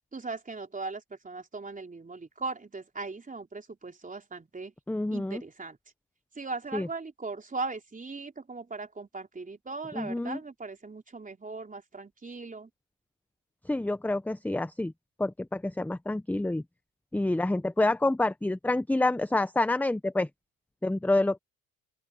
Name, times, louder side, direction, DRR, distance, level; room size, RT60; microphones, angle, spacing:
voice 1, 0.1-4.7 5.1-5.8 6.4-12.7, right 3 dB, 20° right, 3.9 m, -39 dB
voice 2, 4.9-5.4 6.7-6.9 9.9-10.4 13.7-14.9 15.2-16.6 17.1-20.3 20.8-21.4, left 2 dB, 5° left, 0.8 m, -27 dB
open air
supercardioid pair, 85°, 41 cm